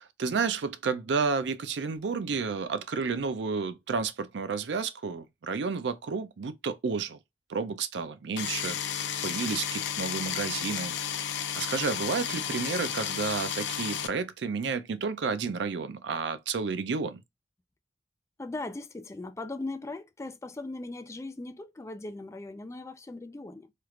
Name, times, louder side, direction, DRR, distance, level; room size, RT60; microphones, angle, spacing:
voice 1, 0.0-7.2 7.5-8.8 9.2-10.9 11.5-17.2, right 5 dB, 75° right, 0.5 m, -31 dB
sound 1, 8.4-14.1, left 8 dB, 80° left, 0.5 m, -32 dB
voice 2, 18.4-23.7, left 2 dB, 15° left, 0.3 m, -39 dB
3.2 x 2.4 x 3.1 m
head